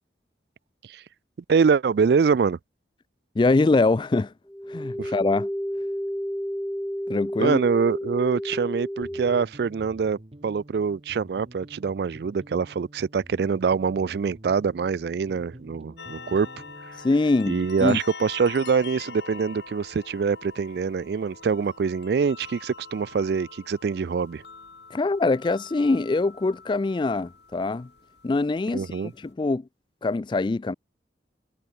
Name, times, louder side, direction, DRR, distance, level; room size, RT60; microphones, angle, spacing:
voice 1, 1.5-2.6 5.0-5.1 7.4-16.5 17.5-24.4 28.7-29.1, right 5 dB, 60° right, 0.3 m, -24 dB
voice 2, 3.4-4.3 4.7-5.5 7.1-7.6 17.0-18.0 24.9-27.9 28.2-29.6 30.0-30.7, left 3 dB, 25° left, 0.3 m, -23 dB
sound 1, 4.5-9.4, equal, 5° left, 1.2 m, -31 dB
sound 2, 9.0-17.5, right 1 dB, 35° right, 1.3 m, -48 dB
sound 3, 16.0-29.3, left 4 dB, 70° left, 3.1 m, -44 dB
head